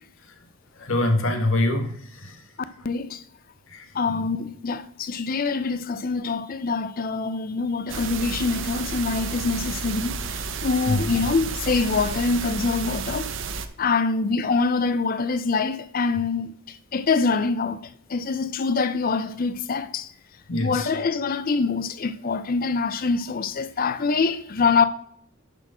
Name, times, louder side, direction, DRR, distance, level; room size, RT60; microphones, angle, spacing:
voice 1, 0.8-2.4 3.7-4.2 10.8-11.0 20.5-20.9, left 1 dB, 65° left, 1.4 m, -25 dB
voice 2, 2.8-3.2 3.9-10.2 10.6-13.3 13.8-17.8 18.1-20.1 20.6-24.8, left 4 dB, 40° left, 0.5 m, -25 dB
sound 1, 7.9-13.7, right 4 dB, 60° right, 0.7 m, -31 dB
10.5 x 4.4 x 4.9 m
head